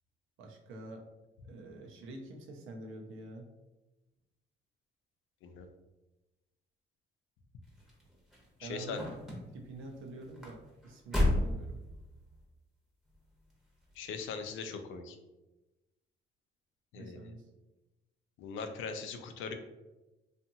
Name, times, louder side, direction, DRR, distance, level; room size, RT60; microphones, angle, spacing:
voice 1, 0.4-1.0 1.4-3.5 8.6-9.1 9.5-11.8 16.9-17.5, right 2 dB, 85° right, 2 dB, 0.6 m, -46 dB
sound 1, 7.6-12.4 13.1-13.5 13.9-14.0, left 1 dB, ahead, 0.9 m, -34 dB
voice 2, 8.6-9.0 14.0-15.2 16.9-17.3 18.4-19.5, left 5 dB, 85° left, 7 dB, 0.4 m, -40 dB
2.7 x 2.5 x 2.6 m, 1.0 s
cardioid pair, 90°, 20 cm